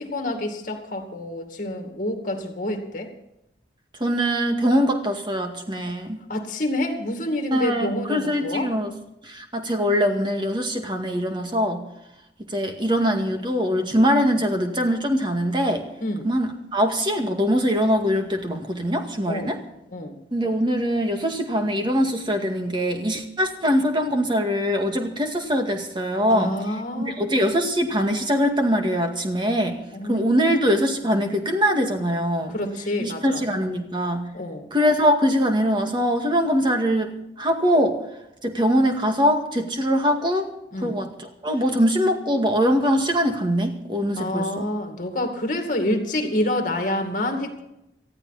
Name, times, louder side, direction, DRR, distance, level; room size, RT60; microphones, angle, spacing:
voice 1, 0.0-3.1 6.3-8.7 16.0-16.3 19.3-19.5 19.9-20.2 26.3-27.3 29.9-30.8 32.5-33.5 34.3-34.7 40.7-41.0 44.2-47.6, left 1 dB, 50° left, 5 dB, 2.3 m, -28 dB
voice 2, 4.0-6.2 7.5-8.9 9.2-11.9 12.4-15.9 16.2-19.6 20.3-26.5 27.0-29.8 30.1-32.5 33.0-34.3 34.7-38.0 38.4-40.5 40.8-41.1 41.4-44.7, equal, 25° right, 4 dB, 2.0 m, -22 dB
19.5 x 14.0 x 4.2 m, 0.84 s
head